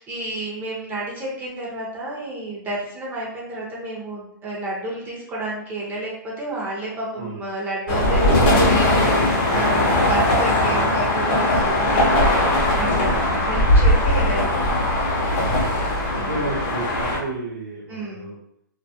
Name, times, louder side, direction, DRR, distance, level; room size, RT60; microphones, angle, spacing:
voice 1, 0.0-14.5 16.1-16.5 17.9-18.3, right 2 dB, 15° right, -5 dB, 0.5 m, -31 dB
sound 1, 7.9-17.2, left 1 dB, 35° left, 0.6 m, -19 dB
voice 2, 9.4-10.0 12.9-13.2 15.4-15.6 16.1-18.4, right 2 dB, 90° right, -6 dB, 0.7 m, -32 dB
2.2 x 2.0 x 2.7 m, 0.75 s
hypercardioid pair, 140°, 11 cm